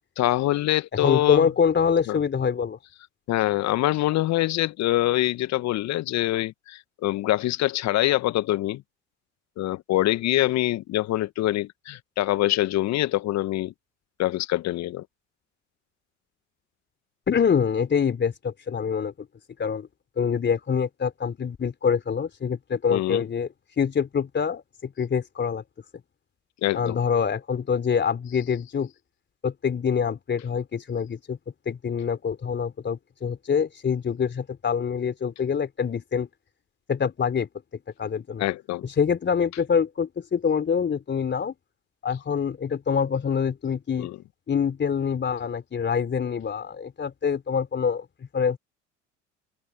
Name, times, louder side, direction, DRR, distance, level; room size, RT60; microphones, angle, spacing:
voice 1, 0.2-1.5 2.1-2.2 3.3-8.8 9.6-13.7 14.2-15.0 22.9-23.2 26.6-27.0 38.4-38.8 44.0-44.1, left 15 dB, 45° left, 1.7 m, -24 dB
voice 2, 0.9-2.8 17.3-19.3 19.6-19.9 20.2-23.5 23.8-25.6 26.7-28.9 29.4-31.4 31.7-36.3 36.9-37.5 38.0-38.4 38.8-41.5 42.0-44.1 44.5-48.1 48.3-48.6, left 6 dB, 30° left, 3.7 m, -25 dB
figure-of-eight pair, 65°, 37 cm